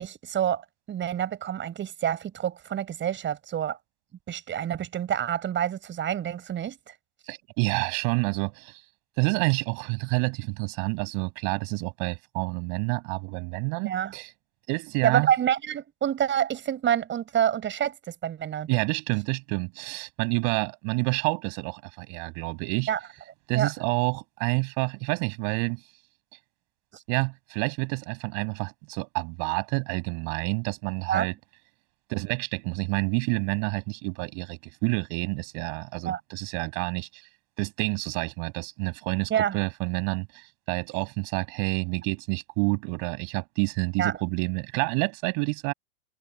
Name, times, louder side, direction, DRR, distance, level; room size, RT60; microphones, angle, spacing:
voice 1, 0.0-3.8 4.3-6.9 13.9-14.1 15.0-18.7 22.9-23.0 23.5-23.7 31.1-31.3 36.1-36.2 39.3-39.6 44.0-44.1, right 10 dB, 25° right, 7.5 m, -27 dB
voice 2, 7.3-8.8 9.2-14.3 14.7-15.3 18.7-22.9 23.5-25.8 27.1-31.3 32.1-37.1 37.6-45.7, right 40 dB or more, 45° right, 8.0 m, -28 dB
hypercardioid pair, 115°, 45 cm